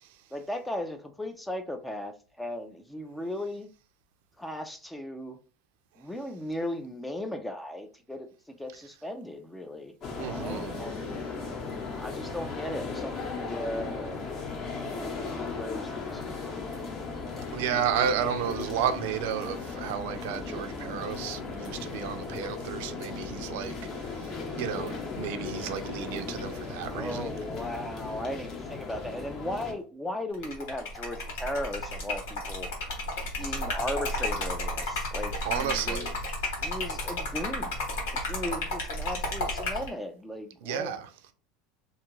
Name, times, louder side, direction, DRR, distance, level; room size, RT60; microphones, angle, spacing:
voice 1, 0.3-3.7 4.4-5.4 6.0-11.1 12.0-14.2 14.8-16.7 26.8-32.7 33.4-36.1 36.6-37.8 38.1-41.0, left 1 dB, 5° left, 0.3 m, -37 dB
sound 1, 10.0-29.7, left 4 dB, 35° left, 0.8 m, -37 dB
voice 2, 10.2-10.7 17.5-23.7 24.0-24.2 24.6-27.3 35.5-36.2 40.6-41.0, right 8 dB, 75° right, 0.4 m, -32 dB
Liquid, 30.3-39.9, left 1 dB, 85° left, 1.2 m, -32 dB
2.6 x 2.4 x 3.0 m
supercardioid pair, 145°, 0 cm